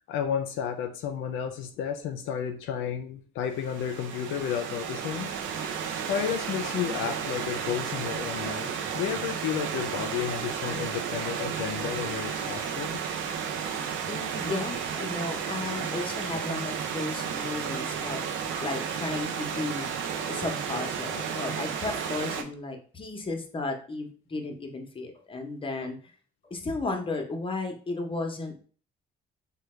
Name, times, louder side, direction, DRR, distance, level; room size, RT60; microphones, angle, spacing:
voice 1, 0.1-5.3 6.1-13.0, left 8 dB, 85° left, 6 dB, 0.4 m, -32 dB
Stream / Liquid, 3.5-22.4, right 7 dB, 80° right, 0.5 m, -33 dB
voice 2, 14.1-18.3 18.6-26.0 26.4-28.6, left 3 dB, 25° left, 3 dB, 0.7 m, -34 dB
3.3 x 2.1 x 3.1 m, 0.41 s
cardioid pair, 90°, 20 cm